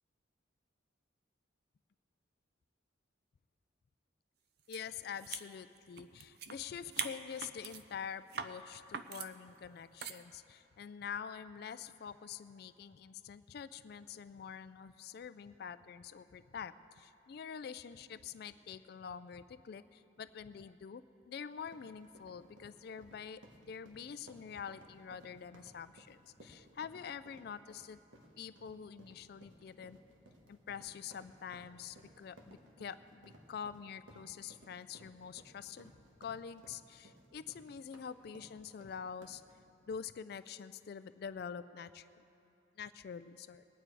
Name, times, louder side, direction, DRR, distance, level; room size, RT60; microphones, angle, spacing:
voice 1, 4.7-28.0 28.4-30.0 30.5-35.9 36.2-39.4 39.9-42.1 42.8-43.6, left 7 dB, 55° left, 13 dB, 0.3 m, -46 dB
sound 1, 4.7-4.8 5.1-6.6 6.9-7.8 8.3-8.5 8.9-9.3 10.0-10.2, right 7 dB, 55° right, 0.5 m, -41 dB
sound 2, 21.5-39.6, right 1 dB, 80° right, 1.4 m, -60 dB
21.0 x 9.0 x 4.7 m, 2.7 s
head